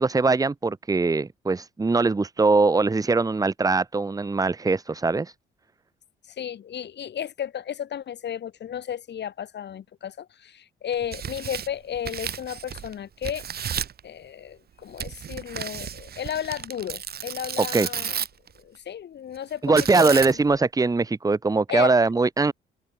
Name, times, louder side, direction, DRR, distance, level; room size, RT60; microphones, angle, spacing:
voice 1, 0.0-5.3 17.7-17.9 19.6-22.5, right 3 dB, 20° right, 0.9 m, -21 dB
voice 2, 6.3-13.4 14.0-18.2 18.6-20.4 21.7-21.9, left 9 dB, 60° left, 4.0 m, -33 dB
Tearing, 10.9-12.9 13.2-14.0 15.0-18.5 19.8-20.6, right 8 dB, 50° right, 1.8 m, -33 dB
cardioid pair, 90°, 20 cm